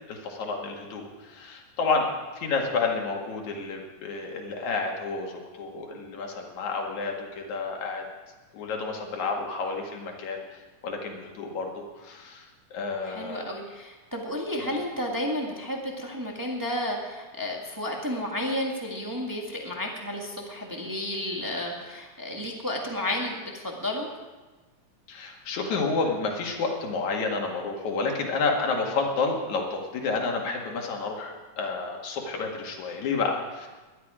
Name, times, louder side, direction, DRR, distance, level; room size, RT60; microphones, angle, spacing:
voice 1, 0.1-2.1 2.4-8.1 8.5-12.5 12.7-13.5 14.6-14.7 25.1-33.7, left 4 dB, 65° left, 1 dB, 3.2 m, -30 dB
voice 2, 13.0-24.1, left 1 dB, 10° right, -1 dB, 0.9 m, -32 dB
19.0 x 12.0 x 5.0 m, 1.2 s
omnidirectional pair, 3.8 m